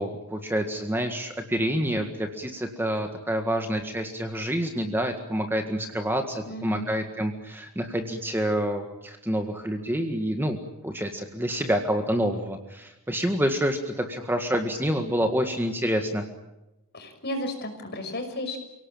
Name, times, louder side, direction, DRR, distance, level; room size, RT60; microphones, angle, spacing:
voice 1, 0.0-10.6 10.8-16.3, equal, 10° right, 5 dB, 1.9 m, -27 dB
voice 2, 6.5-6.9 16.9-18.6, left 1 dB, 45° left, 5 dB, 5.9 m, -33 dB
29.5 x 18.0 x 9.0 m, 0.94 s
head